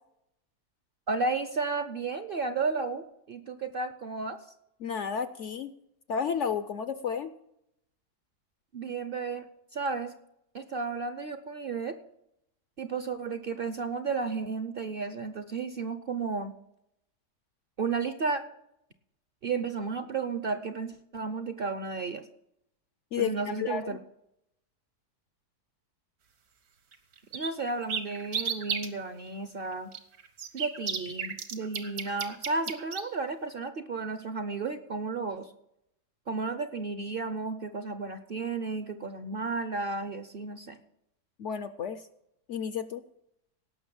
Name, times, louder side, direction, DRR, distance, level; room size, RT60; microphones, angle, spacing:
voice 1, 1.1-4.4 8.7-9.5 9.7-10.1 10.5-12.0 12.8-16.5 17.8-18.4 19.4-22.2 23.2-24.0 27.3-29.9 30.5-35.5 36.3-40.8, right 4 dB, 50° right, 10 dB, 0.7 m, -33 dB
voice 2, 4.8-5.7 6.1-7.3 23.1-24.0 41.4-42.1 42.5-43.0, left 7 dB, 60° left, 12 dB, 0.8 m, -32 dB
sound 1, 26.9-27.0 27.3-28.9 29.9-33.0, right 7 dB, 70° right, 1.8 m, -33 dB
17.5 x 6.4 x 7.1 m, 0.78 s
omnidirectional pair, 1.7 m